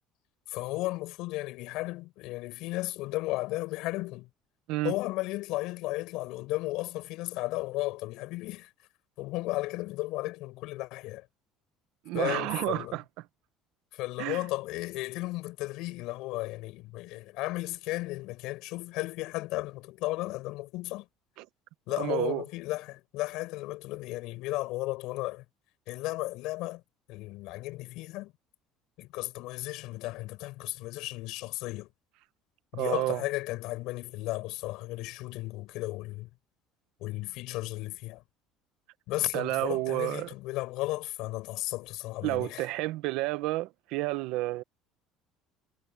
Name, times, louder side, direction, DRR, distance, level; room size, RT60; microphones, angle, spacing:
voice 1, 0.5-4.3 4.8-8.7 9.2-11.3 12.1-13.0 13.9-21.1 21.9-25.4 25.9-26.8 27.1-28.3 29.0-31.9 32.7-36.3 37.0-38.2 39.1-42.7, left 19 dB, 65° left, 5.7 m, -34 dB
voice 2, 12.0-13.0 14.2-14.4 21.4-21.5 22.0-22.4 32.7-33.2 39.3-40.3 42.2-44.6, right 18 dB, 65° right, 1.0 m, -30 dB
cardioid pair, 170°, 0 cm